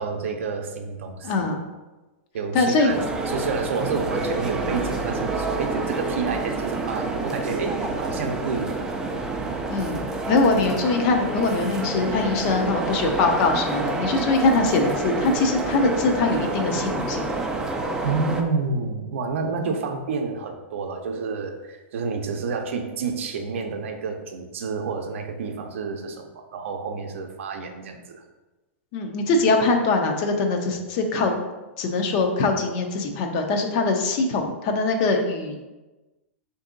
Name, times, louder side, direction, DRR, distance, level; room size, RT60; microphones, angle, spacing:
voice 1, 0.0-1.5 2.3-3.0 3.3-8.8 18.0-28.2, right 4 dB, 75° right, 5 dB, 0.5 m, -29 dB
voice 2, 1.2-1.6 2.5-2.9 9.7-17.4 19.7-19.8 28.9-31.3 31.8-35.6, left 3 dB, 40° left, 4 dB, 0.5 m, -22 dB
sound 1, 2.9-18.4, right 3 dB, 10° right, 0.3 m, -28 dB
3.6 x 2.6 x 3.8 m, 1.1 s
hypercardioid pair, 150°, 7 cm